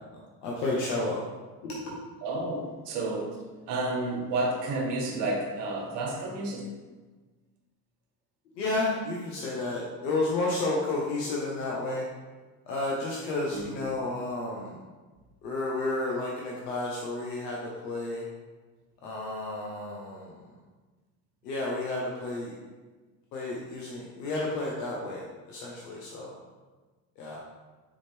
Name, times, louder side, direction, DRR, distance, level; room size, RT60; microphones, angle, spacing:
voice 1, 0.4-1.3 1.6-2.0 8.6-12.0 12.7-14.8 15.4-18.3 19.0-20.5 21.4-22.5 23.3-26.4 27.2-27.4, left 2 dB, 85° left, -3 dB, 0.8 m, -31 dB
voice 2, 2.2-3.4 3.7-6.7 13.5-13.9, right 2 dB, 60° right, 0 dB, 1.1 m, -31 dB
3.7 x 3.5 x 3.4 m, 1.3 s
hypercardioid pair, 70°, 49 cm